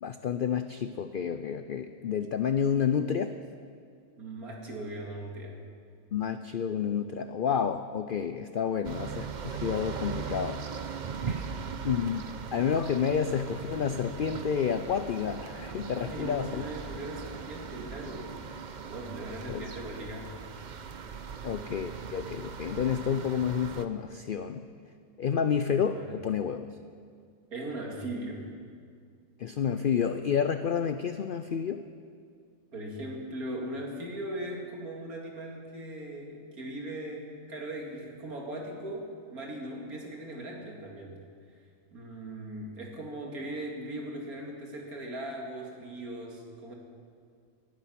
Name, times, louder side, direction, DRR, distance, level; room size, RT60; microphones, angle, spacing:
voice 1, 0.0-3.3 6.1-10.6 11.8-12.2 12.5-16.6 19.5-19.7 21.4-24.6 25.2-26.7 29.4-31.8, left 7 dB, 75° left, 10 dB, 0.4 m, -30 dB
voice 2, 4.2-5.6 11.3-12.0 12.9-13.0 15.8-18.3 18.8-20.3 25.9-26.2 27.5-28.5 32.7-41.2 41.9-46.7, right 1 dB, 75° right, 0 dB, 2.8 m, -39 dB
sound 1, 8.8-23.9, right 6 dB, 50° right, 0.6 m, -39 dB
19.0 x 12.5 x 5.9 m, 2.2 s
omnidirectional pair, 1.6 m